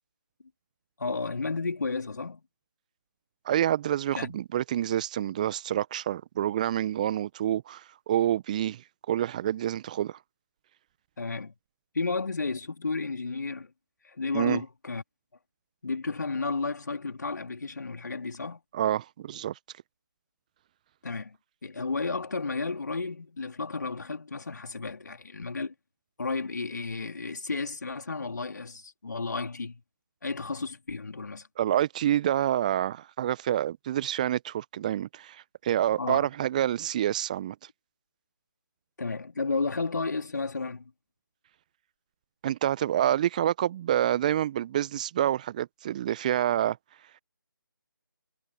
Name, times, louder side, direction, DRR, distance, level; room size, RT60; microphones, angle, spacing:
voice 1, 1.0-2.4 4.1-4.3 11.2-11.5 11.9-13.7 14.0-15.0 15.8-18.6 21.0-21.4 21.6-25.7 26.2-29.8 30.2-31.5 36.0-36.3 39.0-40.9, left 4 dB, 55° left, 3.6 m, -32 dB
voice 2, 3.4-10.2 14.3-14.6 18.7-19.5 31.6-37.5 42.4-46.8, right 11 dB, 20° right, 1.1 m, -27 dB
figure-of-eight pair, 155°, 12 cm